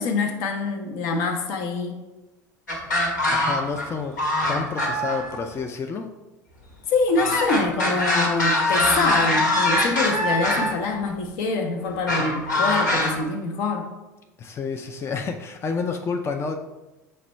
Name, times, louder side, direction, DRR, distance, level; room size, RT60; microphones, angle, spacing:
voice 1, 0.0-2.0 6.9-13.9, left 3 dB, 65° left, 5 dB, 0.7 m, -25 dB
sound 1, 2.7-3.9 4.2-5.4 7.1-10.7 12.1-13.1, left 1 dB, 85° left, 1.1 m, -22 dB
voice 2, 3.3-4.1 4.5-6.1 14.4-16.6, left 5 dB, 25° left, 4 dB, 0.4 m, -29 dB
5.6 x 2.2 x 4.3 m, 1.1 s
hypercardioid pair, 80°, 10 cm